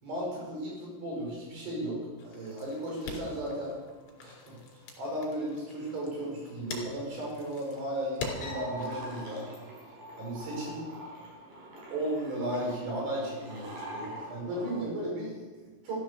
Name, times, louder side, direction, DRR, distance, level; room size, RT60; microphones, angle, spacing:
voice 1, 0.0-3.7 4.2-4.6 5.0-9.4 10.2-10.8 11.9-16.0, right 1 dB, 55° right, -3 dB, 7.6 m, -35 dB
sound 1, 2.2-9.2, left 4 dB, 60° left, 5.4 m, -44 dB
sound 2, 8.3-14.8, right 1 dB, 40° right, 5.8 m, -43 dB
14.0 x 13.5 x 7.1 m, 1.3 s
omnidirectional pair, 5.9 m